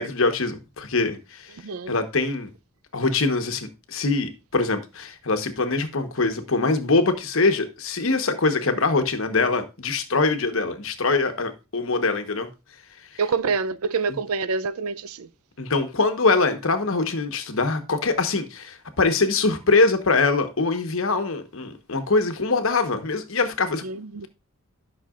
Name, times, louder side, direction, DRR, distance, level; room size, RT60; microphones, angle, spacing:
voice 1, 0.0-1.5 1.9-2.5 2.9-12.5 15.6-23.8, left 3 dB, 65° left, 1.1 m, -23 dB
voice 2, 1.6-2.0 13.2-15.3 23.8-24.3, right 5 dB, 85° right, 0.5 m, -27 dB
11.5 x 6.0 x 2.5 m
head